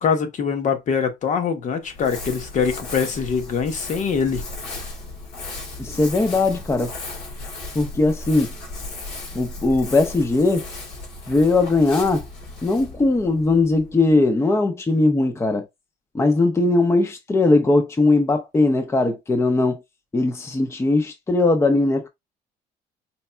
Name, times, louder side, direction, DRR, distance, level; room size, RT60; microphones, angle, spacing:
voice 1, 0.0-4.4, left 6 dB, 45° left, 0.9 m, -23 dB
Crumpling crinkling, 1.8-14.3, left 2 dB, 85° left, 2.2 m, -36 dB
voice 2, 5.8-6.9 7.7-8.5 9.3-10.7 11.3-12.2 12.6-15.7 16.1-19.8 20.1-22.1, left 2 dB, 15° left, 0.6 m, -19 dB
4.3 x 3.4 x 2.2 m
cardioid pair, 110°, 17 cm